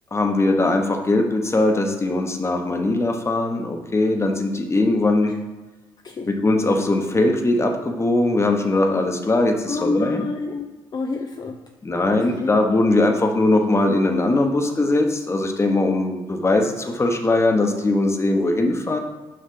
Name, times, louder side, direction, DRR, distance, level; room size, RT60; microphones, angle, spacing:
voice 1, 0.1-5.3 6.4-10.2 11.8-19.0, left 2 dB, 25° left, 4 dB, 1.2 m, -20 dB
voice 2, 9.7-10.7 10.9-11.6 12.3-12.5, left 3 dB, 40° left, 4 dB, 0.7 m, -27 dB
6.7 x 5.4 x 3.9 m, 1.2 s
supercardioid pair, 60°, 11 cm